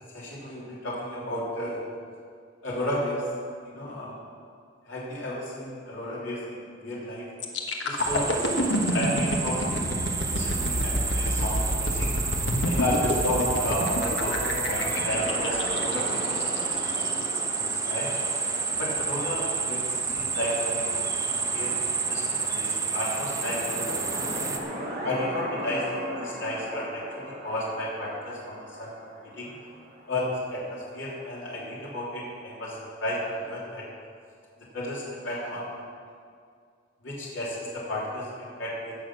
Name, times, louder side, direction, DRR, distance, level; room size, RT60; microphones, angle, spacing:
voice 1, 0.1-1.8 2.6-3.2 3.7-4.2 4.8-7.3 7.8-9.8 10.3-12.1 12.6-16.4 16.7-17.3 17.6-18.1 18.8-21.7 22.1-24.6 25.0-28.9 29.4-29.5 30.1-33.9 34.7-35.7 37.0-39.0, left 1 dB, 90° left, -6 dB, 3.0 m, -33 dB
sound 1, 7.4-17.2 17.7-17.9, left 1 dB, 70° left, 1.3 m, -28 dB
sound 2, 8.0-24.6, right 4 dB, 15° right, 0.8 m, -30 dB
sound 3, 13.9-21.1 23.0-30.8, equal, 55° right, 2.9 m, -38 dB
16.5 x 6.5 x 6.1 m, 2.2 s
head